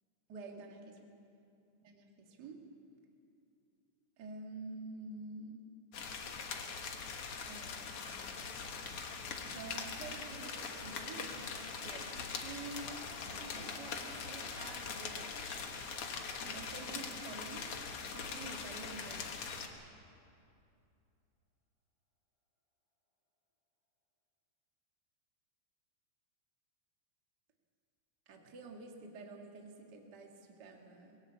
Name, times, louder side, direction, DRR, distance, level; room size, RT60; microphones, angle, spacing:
voice 1, 0.3-1.1 1.8-2.6 4.2-5.6 7.4-8.5 9.1-15.4 16.4-17.7 18.0-19.4 28.3-31.2, right 3 dB, 35° right, 2 dB, 1.9 m, -49 dB
sound 1, 5.9-19.7, left 5 dB, 55° left, 1.9 m, -42 dB
sound 2, 11.8-19.5, left 1 dB, 25° left, 3.6 m, -60 dB
22.0 x 16.5 x 8.6 m, 2.6 s
omnidirectional pair, 4.0 m